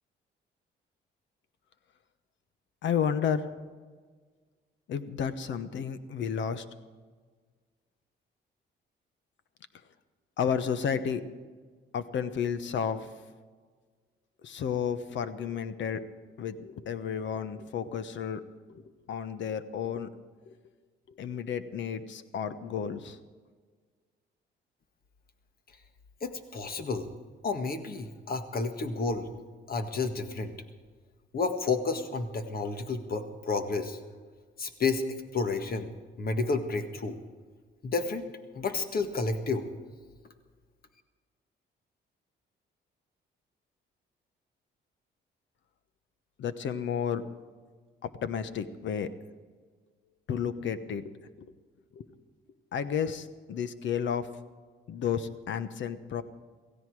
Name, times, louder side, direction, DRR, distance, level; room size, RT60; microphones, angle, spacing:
voice 1, 2.8-3.5 4.9-6.6 10.4-11.2 11.9-13.1 14.4-16.0 16.4-18.4 18.7-18.8 19.1-20.1 20.5-20.6 21.2-23.2 46.4-47.2 48.0-49.1 50.3-51.1 51.4-51.5 51.9-52.1 52.7-54.3 54.9-56.2, left 7 dB, 70° left, 12 dB, 1.1 m, -32 dB
voice 2, 26.2-27.1 27.4-29.3 29.7-30.5 31.3-34.0 34.6-35.1 35.3-35.9 36.2-37.2 37.8-38.3 38.5-39.7, left 4 dB, 50° left, 7 dB, 1.7 m, -31 dB
17.0 x 15.5 x 4.9 m, 1.5 s
cardioid pair, 90°, 20 cm